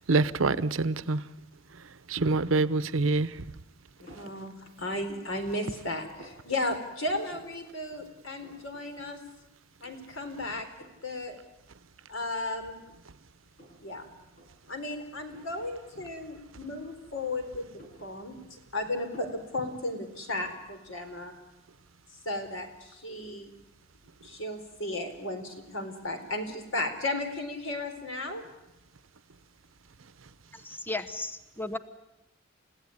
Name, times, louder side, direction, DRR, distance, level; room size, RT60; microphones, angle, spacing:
voice 1, 0.1-1.2 2.1-3.4, right 3 dB, 85° right, 0.8 m, -25 dB
voice 2, 4.0-9.2 9.8-10.7 11.0-11.4 12.1-12.8 13.8-14.1 14.7-17.7 18.0-21.3 22.2-23.5 24.2-28.4, left 2 dB, 90° left, 4.2 m, -35 dB
sound 1, 4.1-4.4 4.9-5.6 5.8-6.4 7.2-7.6 7.9-8.0 8.2-8.8 9.2-9.3 9.8-10.3 10.8-11.1 11.9-12.0 12.5-13.9 14.3-14.5 15.3-15.6 16.6-17.3 17.6-18.6 19.1-19.4, equal, 40° left, 7.3 m, -53 dB
voice 3, 30.6-31.8, left 2 dB, 10° left, 1.0 m, -35 dB
30.0 x 16.5 x 9.7 m
head